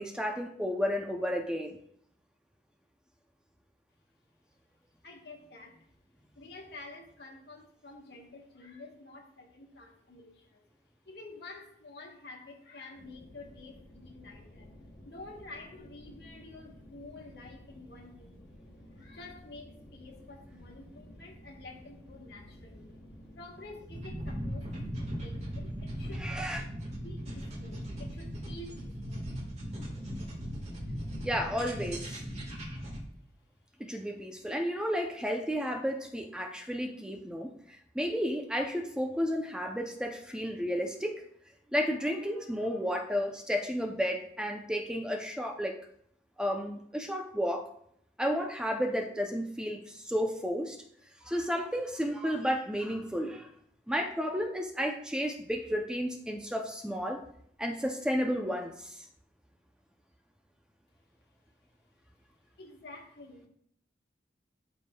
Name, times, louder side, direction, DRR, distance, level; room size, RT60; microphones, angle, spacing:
voice 1, 0.0-1.8 26.2-26.6 31.2-32.2 33.8-37.5 37.9-41.2 41.7-45.8 46.4-47.7 48.2-50.8 51.2-53.5 53.9-57.2 57.6-59.0, equal, 5° right, 3 dB, 0.5 m, -32 dB
voice 2, 5.0-5.9 6.3-10.7 11.0-14.7 15.0-18.4 18.9-23.0 23.3-26.3 27.0-29.3 62.6-63.5, left 2 dB, 60° left, 1 dB, 1.4 m, -49 dB
sound 1, 13.0-23.9, equal, 45° left, 1.3 m, -53 dB
sound 2, 23.9-33.0, equal, 35° right, 1.6 m, -38 dB
12.5 x 5.0 x 2.3 m, 0.68 s
head